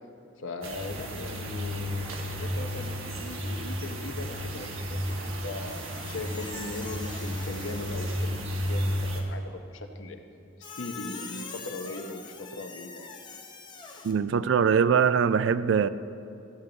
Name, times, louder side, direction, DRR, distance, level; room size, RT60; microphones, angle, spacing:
voice 1, 0.4-2.1 2.4-10.2 10.8-13.1, left 2 dB, 75° left, 0.8 m, -39 dB
sound 1, 0.6-9.2, equal, 85° right, 1.2 m, -33 dB
Squeak, 5.7-8.4 10.6-14.1, left 5 dB, 20° left, 0.6 m, -44 dB
voice 2, 14.0-15.9, right 6 dB, 65° right, 0.3 m, -22 dB
14.0 x 8.3 x 3.9 m
head